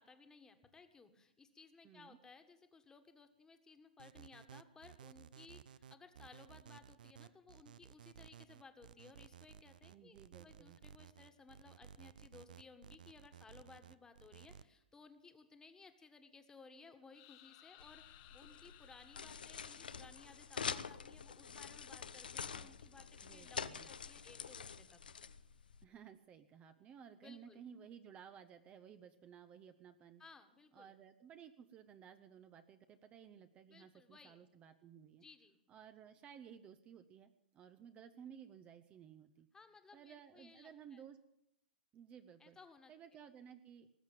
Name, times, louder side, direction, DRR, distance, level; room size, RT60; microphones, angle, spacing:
voice 1, 0.0-25.0 27.2-27.6 30.2-30.9 33.7-34.4 35.2-35.6 39.5-41.0 42.4-42.9, left 4 dB, 15° left, 8 dB, 1.7 m, -60 dB
voice 2, 1.8-2.2 9.9-10.8 23.2-23.9 25.8-30.2 30.7-35.2 35.7-39.5 39.9-41.2 41.9-42.6 42.9-43.9, right 8 dB, 25° right, 9 dB, 0.8 m, -57 dB
sound 1, 4.0-14.6, right 8 dB, 65° right, 0.6 m, -57 dB
sound 2, 17.1-20.9, left 14 dB, 45° left, 1.1 m, -63 dB
sound 3, 17.8-25.8, left 6 dB, 75° left, 0.7 m, -46 dB
19.5 x 7.5 x 9.1 m, 0.80 s
figure-of-eight pair, 110°, 5 cm